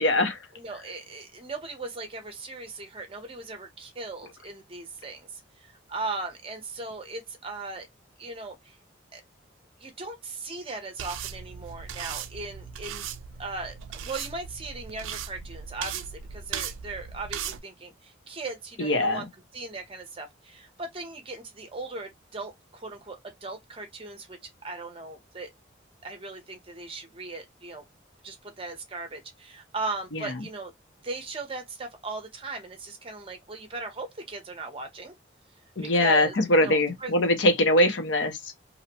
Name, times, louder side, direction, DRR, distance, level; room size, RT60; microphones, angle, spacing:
voice 1, 0.0-0.4 18.8-19.3 30.1-30.3 35.8-38.5, left 1 dB, 70° left, 0.7 m, -22 dB
voice 2, 0.5-5.3 5.6-7.9 8.2-8.8 9.1-9.2 9.8-13.0 13.4-19.2 19.5-25.5 26.0-27.8 28.2-30.7 31.0-35.1 35.8-36.3 36.6-37.1, right 3 dB, 30° right, 0.7 m, -38 dB
sound 1, 11.0-17.6, right 8 dB, 90° right, 0.3 m, -37 dB
2.6 x 2.1 x 2.7 m
head